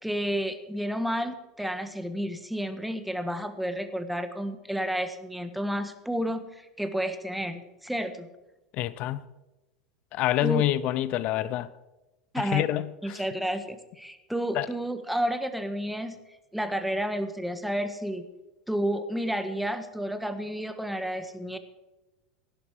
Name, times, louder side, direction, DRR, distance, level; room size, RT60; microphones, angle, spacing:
voice 1, 0.0-8.3 10.4-10.6 12.3-12.7 13.0-16.2 16.5-18.2 18.7-21.6, equal, ahead, 1.5 m, -31 dB
voice 2, 8.7-9.2 10.1-11.7 12.4-13.2 14.5-14.7, left 14 dB, 45° left, 0.8 m, -27 dB
17.0 x 11.5 x 4.8 m
figure-of-eight pair, 85°, 3 cm